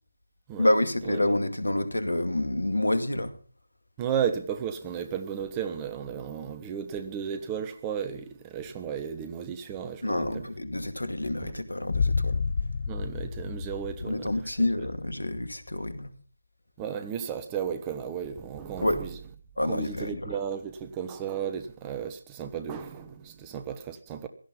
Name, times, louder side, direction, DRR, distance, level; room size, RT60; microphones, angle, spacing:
voice 1, 0.6-3.4 10.0-12.4 14.0-16.1 18.8-19.0 19.6-20.4, left 1 dB, 80° left, 2.3 m, -28 dB
voice 2, 4.0-10.4 11.4-11.5 12.8-14.3 16.8-19.1 19.6-24.3, right 8 dB, 15° right, 1.2 m, -34 dB
Boom, 11.9-14.9, left 4 dB, 45° left, 0.8 m, -30 dB
17.0 x 13.0 x 5.4 m
figure-of-eight pair, 155°, 0 cm